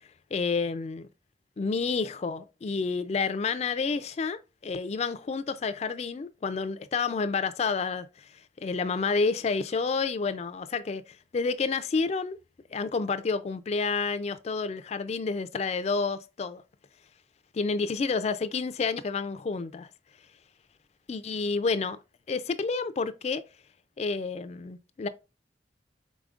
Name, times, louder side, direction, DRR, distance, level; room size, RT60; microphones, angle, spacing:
voice 1, 0.3-1.1 1.6-8.3 8.6-11.0 11.3-12.4 12.7-16.6 17.5-19.9 21.1-22.0 22.3-23.4 24.0-25.1, left 4 dB, 35° left, 0.3 m, -29 dB
5.0 x 4.0 x 2.4 m
head